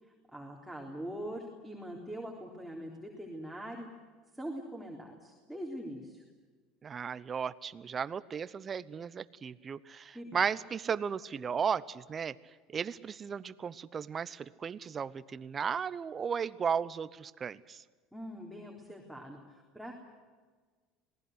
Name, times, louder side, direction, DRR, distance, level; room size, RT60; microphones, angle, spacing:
voice 1, 0.0-3.9 4.3-6.2 10.1-10.3 18.1-19.9, equal, ahead, -2 dB, 3.8 m, -43 dB
voice 2, 6.8-12.3 12.7-17.8, right 7 dB, 30° right, 15 dB, 0.9 m, -35 dB
27.0 x 19.0 x 8.0 m, 1.5 s
supercardioid pair, 120°, 0 cm